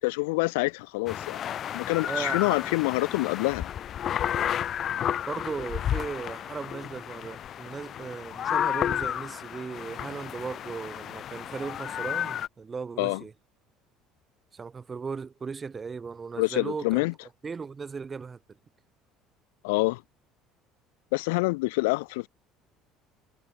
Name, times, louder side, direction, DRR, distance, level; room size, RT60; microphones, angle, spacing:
voice 1, 0.0-1.4 1.7-3.7 13.0-13.2 16.4-17.1 19.6-20.0 21.1-22.3, left 25 dB, 80° left, 1.0 m, -26 dB
sound 1, 1.1-12.5, left 10 dB, 50° left, 0.5 m, -32 dB
voice 2, 2.0-2.6 5.3-13.3 14.5-17.1 17.4-18.4, right 5 dB, 30° right, 6.0 m, -37 dB
hypercardioid pair, 75°, 0 cm